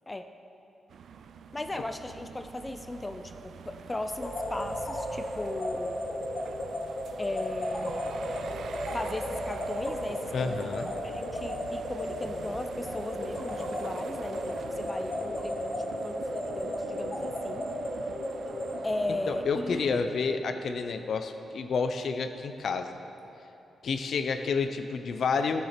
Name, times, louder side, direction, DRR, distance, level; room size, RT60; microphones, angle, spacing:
sound 1, 0.9-20.0, right 6 dB, 75° right, 0.4 m, -44 dB
voice 1, 1.5-6.0 7.2-8.4 8.9-10.6 11.0-15.8 16.0-17.7 18.8-19.9, left 2 dB, 20° left, 7 dB, 0.5 m, -37 dB
sound 2, 4.2-18.8, left 1 dB, 40° left, 1.7 m, -35 dB
voice 2, 10.3-10.9 19.3-22.9 23.8-25.6, left 5 dB, 65° left, 8 dB, 0.7 m, -29 dB
13.5 x 7.1 x 5.9 m, 2.9 s
cardioid pair, 105°, 0 cm